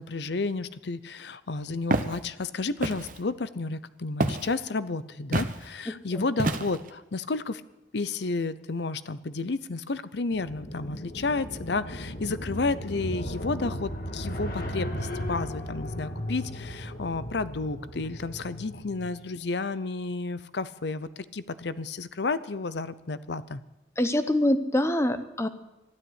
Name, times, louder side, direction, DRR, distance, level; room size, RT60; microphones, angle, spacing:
voice 1, 0.0-7.6 7.9-23.6, left 3 dB, 70° left, 15 dB, 0.7 m, -31 dB
Walk footsteps, 1.9-2.2 2.8-3.2 4.2-4.5 5.3-5.6 6.4-6.9, right 2 dB, 45° right, 0.9 m, -27 dB
voice 2, 5.9-6.2 24.0-25.5, left 1 dB, 15° left, 10 dB, 0.8 m, -25 dB
sound 1, 10.3-19.1, equal, 50° left, 1.7 m, -36 dB
13.0 x 12.0 x 8.1 m, 0.97 s
head